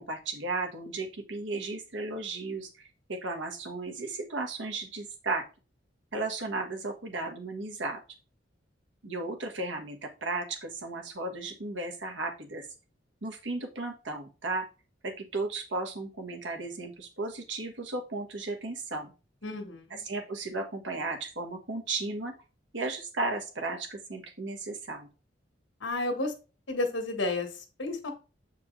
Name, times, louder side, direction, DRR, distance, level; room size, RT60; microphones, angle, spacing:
voice 1, 0.0-5.4 6.1-8.0 9.0-12.7 13.2-14.6 15.0-19.1 20.0-22.3 22.7-25.1, right 3 dB, 80° right, 3 dB, 1.4 m, -35 dB
voice 2, 19.4-20.0 25.8-26.3 26.7-28.1, left 2 dB, 85° left, 5 dB, 1.5 m, -32 dB
7.5 x 4.5 x 3.2 m, 0.33 s
head